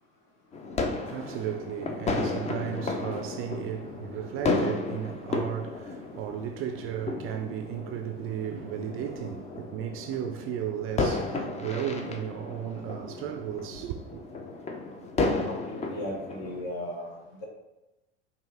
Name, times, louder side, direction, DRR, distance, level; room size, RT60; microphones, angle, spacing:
sound 1, 0.5-16.6, left 3 dB, 20° left, 0.5 m, -33 dB
voice 1, 0.8-14.2, right 10 dB, 45° right, 0.4 m, -35 dB
voice 2, 15.2-17.5, left 1 dB, 55° left, 1.1 m, -37 dB
5.2 x 2.5 x 3.4 m
hypercardioid pair, 80°, 32 cm